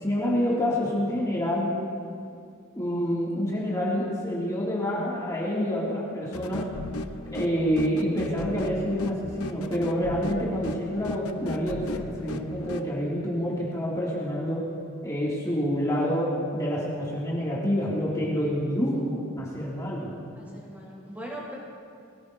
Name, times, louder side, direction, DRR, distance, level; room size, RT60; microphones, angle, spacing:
voice 1, 0.0-1.7 2.7-6.6 7.3-14.6 15.0-20.1, equal, 15° left, -7 dB, 2.4 m, -27 dB
beep line, 6.3-12.9, left 2 dB, 75° left, 0.7 m, -37 dB
voice 2, 20.3-21.5, equal, 10° right, -5 dB, 3.4 m, -41 dB
22.5 x 16.0 x 2.7 m, 2.4 s
head